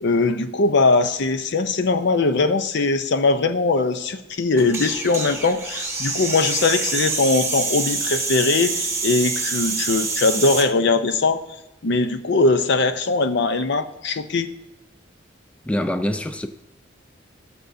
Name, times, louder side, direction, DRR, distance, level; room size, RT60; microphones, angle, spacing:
voice 1, 0.0-11.4 11.8-14.5, left 3 dB, 65° left, 0.7 m, -20 dB
sound 1, 4.6-10.7, right 3 dB, 15° right, 1.0 m, -26 dB
voice 2, 15.7-16.5, left 1 dB, 5° left, 0.4 m, -24 dB
17.5 x 6.9 x 2.7 m
head